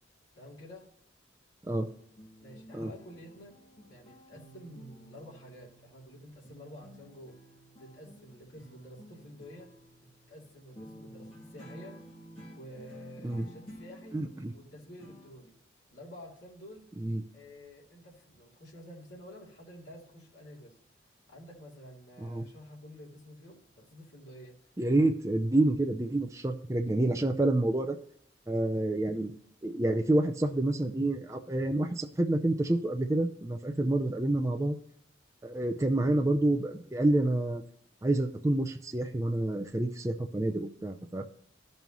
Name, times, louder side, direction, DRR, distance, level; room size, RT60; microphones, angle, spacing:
voice 1, 0.3-0.9 2.4-3.6 3.9-7.4 7.8-9.7 10.3-12.0 12.5-14.2 14.5-15.6 15.9-16.9 17.3-20.8 21.3-24.6, equal, 75° left, -5 dB, 2.8 m, -50 dB
sound 1, 1.8-6.2 6.4-15.3, equal, 30° left, 2.6 m, -52 dB
voice 2, 14.1-14.5 17.0-17.2 22.2-22.5 24.8-28.0 28.5-29.3 29.6-34.8 35.4-37.6 38.0-41.2, right 1 dB, 15° right, 3 dB, 0.4 m, -28 dB
13.5 x 5.4 x 3.0 m, 0.66 s
head